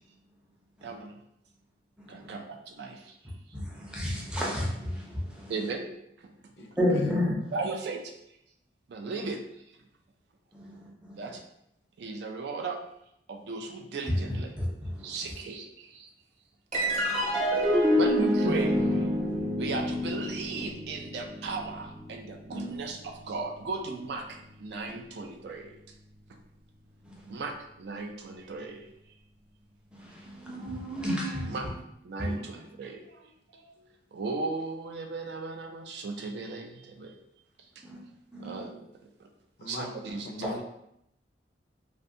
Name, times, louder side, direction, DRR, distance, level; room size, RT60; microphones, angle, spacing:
voice 1, 0.8-1.2 2.1-3.2 5.5-5.9 6.2-6.7 7.5-8.1 8.9-9.4 11.2-11.4 12.0-12.8 13.3-14.5 15.0-16.1 18.0-19.1 19.6-25.8 27.3-28.9 31.5-31.7 32.0-37.2 38.4-39.3 39.6-40.6, right 3 dB, 70° right, 4 dB, 0.4 m, -37 dB
voice 2, 3.5-5.5 6.8-7.5 10.5-11.2 14.1-15.2 16.9-18.0 22.5-22.7 27.0-27.4 29.9-31.7 32.2-32.3 37.8-38.0 38.3-38.6 40.4-40.5, left 1 dB, 5° right, -4 dB, 0.5 m, -32 dB
voice 3, 6.6-7.1 39.6-40.6, left 3 dB, 65° left, 3 dB, 0.4 m, -41 dB
sound 1, 16.7-23.4, equal, 40° right, 0.7 m, -28 dB
2.5 x 2.2 x 2.6 m, 0.78 s
head